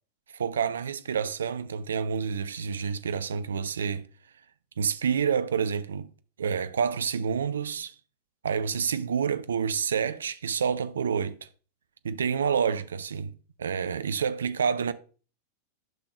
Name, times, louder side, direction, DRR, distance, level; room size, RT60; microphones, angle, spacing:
voice 1, 0.3-4.1 4.8-6.1 6.4-7.9 8.4-11.5 12.0-13.3 13.6-14.9, right 6 dB, 65° right, 0.4 m, -28 dB
12.0 x 5.8 x 2.4 m
figure-of-eight pair, 90°, 0 cm